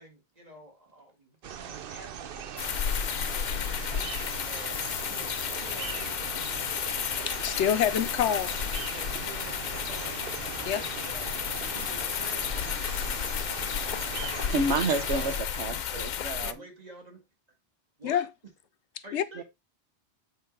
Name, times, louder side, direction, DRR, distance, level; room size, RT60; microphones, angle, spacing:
voice 1, 0.0-2.4 3.3-4.1 4.5-7.1 7.8-7.9 8.9-10.2 10.6-13.4 13.7-14.6 15.6-17.2 18.0-18.3 19.0-19.4, right 1 dB, 35° right, 2.1 m, -49 dB
sound 1, 1.4-15.4, right 8 dB, 60° right, 0.8 m, -40 dB
sound 2, 2.6-16.5, left 9 dB, 60° left, 0.5 m, -32 dB
voice 2, 7.3-8.5 10.6-10.8 18.0-18.3 19.1-19.2, left 9 dB, 80° left, 1.0 m, -27 dB
voice 3, 14.5-16.5 19.4-19.5, right 3 dB, 75° right, 1.3 m, -29 dB
8.3 x 3.0 x 5.2 m
omnidirectional pair, 1.2 m